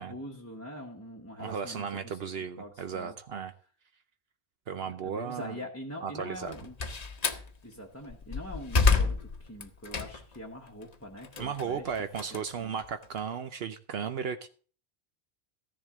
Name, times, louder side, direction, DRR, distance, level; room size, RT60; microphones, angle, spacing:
voice 1, 0.0-2.3 2.6-3.2 4.8-6.8 7.6-11.9 12.3-12.8, equal, 15° left, -2 dB, 1.0 m, -43 dB
voice 2, 1.4-3.5 4.7-5.6 6.0-6.5 11.4-14.5, right 7 dB, 70° right, 9 dB, 1.0 m, -35 dB
Slam, 6.3-7.5 8.0-10.4 10.8-13.2, left 4 dB, 40° left, 0.9 m, -29 dB
14.0 x 10.5 x 3.7 m, 0.41 s
omnidirectional pair, 1.1 m